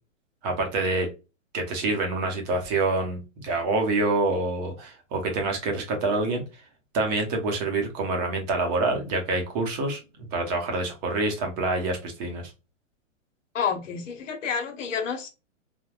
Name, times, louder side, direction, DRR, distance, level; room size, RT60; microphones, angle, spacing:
voice 1, 0.4-1.1 1.5-6.4 6.9-10.0 10.3-12.5, right 2 dB, 30° right, 3 dB, 0.8 m, -26 dB
voice 2, 13.5-15.3, left 6 dB, 70° left, 5 dB, 1.0 m, -29 dB
3.5 x 2.2 x 2.4 m, 0.28 s
hypercardioid pair, 140°, 39 cm